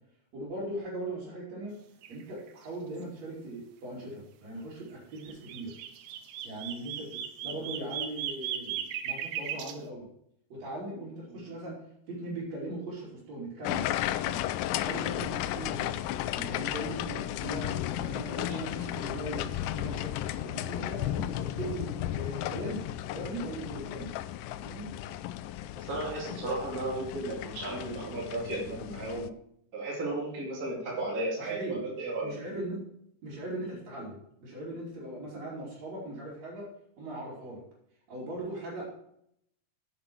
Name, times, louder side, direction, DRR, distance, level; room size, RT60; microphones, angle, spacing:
voice 1, 0.3-1.7 2.1-5.8 6.4-10.1 10.5-11.8 12.1-13.9 14.2-14.4 14.7-15.9 16.3-20.1 20.4-22.8 23.1-24.1 24.6-24.9 31.4-31.8 32.2-32.8 33.2-36.7 37.0-37.6 38.1-38.9, right 1 dB, 60° right, -9 dB, 4.3 m, -39 dB
sound 1, 2.0-2.2 2.5-2.6 5.2-9.8, right 9 dB, 90° right, 2.4 m, -36 dB
sound 2, 13.6-29.3, left 13 dB, 85° left, 2.1 m, -34 dB
voice 2, 25.8-29.3 29.7-32.3, right 2 dB, 30° right, -4 dB, 2.8 m, -34 dB
10.0 x 7.9 x 4.5 m, 0.71 s
omnidirectional pair, 3.6 m